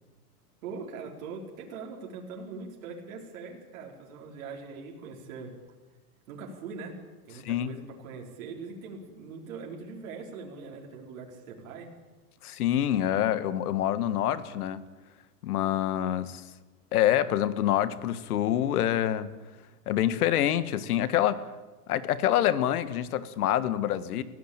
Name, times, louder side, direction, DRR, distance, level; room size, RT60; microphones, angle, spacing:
voice 1, 0.6-5.5 6.3-7.0 7.3-11.9, right 4 dB, 60° right, 0 dB, 5.0 m, -41 dB
voice 2, 7.4-7.8 12.4-14.8 15.4-16.4 16.9-19.3 19.9-21.4 21.9-24.2, left 11 dB, 75° left, 13 dB, 1.8 m, -26 dB
25.0 x 16.5 x 9.0 m, 1.2 s
supercardioid pair, 160°, 45 cm